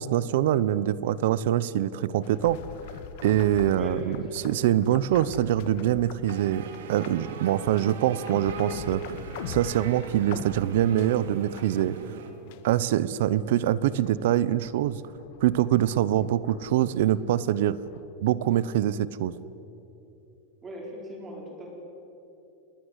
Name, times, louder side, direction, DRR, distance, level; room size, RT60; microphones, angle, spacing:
voice 1, 0.0-2.6 3.2-9.0 9.5-12.0 12.6-15.0 15.4-17.8 18.2-19.3, right 12 dB, 60° right, 18 dB, 0.8 m, -24 dB
sound 1, 2.2-12.1 12.4-18.1, left 8 dB, 50° left, 1.6 m, -44 dB
voice 2, 3.7-4.6 7.8-7.9 20.6-21.7, right 1 dB, 15° right, 0 dB, 4.5 m, -39 dB
sound 2, 6.3-12.3, right 5 dB, 80° right, 3.4 m, -40 dB
28.5 x 20.5 x 8.2 m, 2.9 s
supercardioid pair, 175°, 0 cm